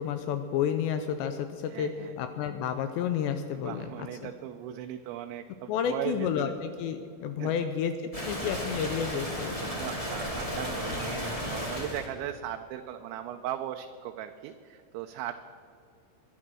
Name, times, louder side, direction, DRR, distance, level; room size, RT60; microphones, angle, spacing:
voice 1, 0.0-3.9 4.2-4.3 5.7-7.9 8.3-9.5, left 8 dB, 80° left, 8 dB, 2.7 m, -30 dB
voice 2, 1.7-2.2 3.5-6.5 7.4-7.5 9.7-15.3, right 11 dB, 80° right, 6 dB, 2.8 m, -38 dB
sound 1, 8.1-12.1, equal, 40° left, 0.5 m, -34 dB
22.5 x 10.5 x 6.1 m, 2.4 s
omnidirectional pair, 5.5 m